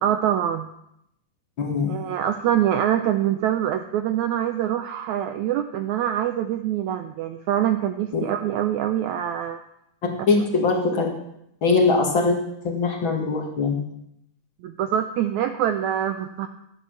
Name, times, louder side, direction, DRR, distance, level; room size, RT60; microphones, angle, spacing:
voice 1, 0.0-0.7 1.9-9.6 10.3-10.4 14.6-16.5, right 10 dB, 90° right, 8 dB, 1.7 m, -24 dB
voice 2, 1.6-2.0 8.1-8.2 10.3-11.1 11.6-12.4 12.6-13.8, left 4 dB, 40° left, 1 dB, 2.1 m, -21 dB
12.5 x 9.8 x 7.0 m, 0.79 s
omnidirectional pair, 4.1 m